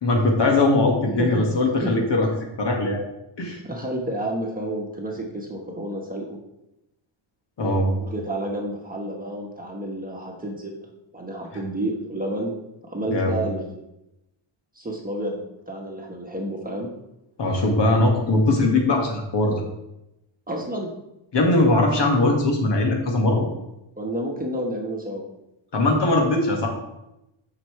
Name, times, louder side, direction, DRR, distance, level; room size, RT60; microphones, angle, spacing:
voice 1, 0.0-2.3 2.6-3.0 3.4-3.6 7.6-7.9 13.1-13.4 17.4-19.6 21.3-23.5 25.7-26.7, left 2 dB, 55° left, 1 dB, 2.0 m, -20 dB
voice 2, 3.6-6.4 8.0-10.9 11.1-12.5 12.8-13.6 14.7-16.9 20.5-20.9 24.0-25.2, right 1 dB, 15° right, 0 dB, 1.4 m, -30 dB
10.0 x 5.9 x 3.3 m, 0.88 s
wide cardioid pair, 135°, 49 cm